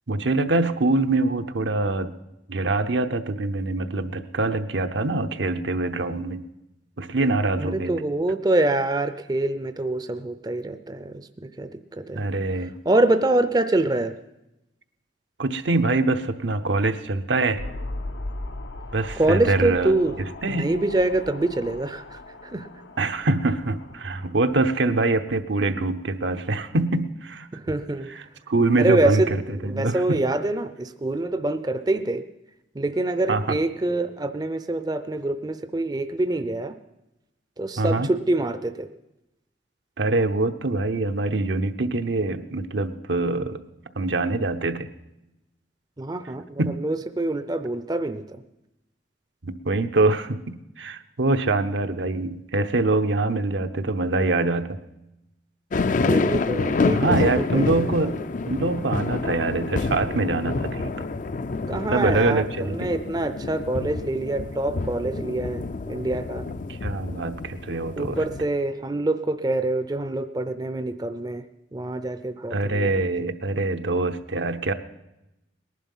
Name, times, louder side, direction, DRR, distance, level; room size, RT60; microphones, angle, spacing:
voice 1, 0.1-2.1 2.5-6.4 7.0-7.9 12.2-12.7 15.4-17.6 18.9-19.9 20.4-20.7 23.0-27.5 28.5-29.2 29.6-30.2 33.3-33.6 37.8-38.1 40.0-43.6 44.0-44.9 46.6-46.8 49.4-54.8 56.9-58.2 58.4-61.1 61.9-62.9 66.7-68.2 72.5-74.7, right 2 dB, 75° right, 8 dB, 0.8 m, -24 dB
voice 2, 7.6-12.2 12.8-14.1 19.2-20.2 20.5-22.7 27.5-28.1 28.8-32.2 32.7-36.8 37.6-38.9 46.0-48.4 56.0-58.1 61.7-66.5 68.0-71.4 71.7-73.0, right 2 dB, 20° right, 11 dB, 0.5 m, -25 dB
sound 1, 17.6-24.7, left 2 dB, 75° left, 0.7 m, -38 dB
sound 2, 55.7-68.4, left 3 dB, 45° left, 0.4 m, -28 dB
19.0 x 11.0 x 5.5 m, 0.92 s
head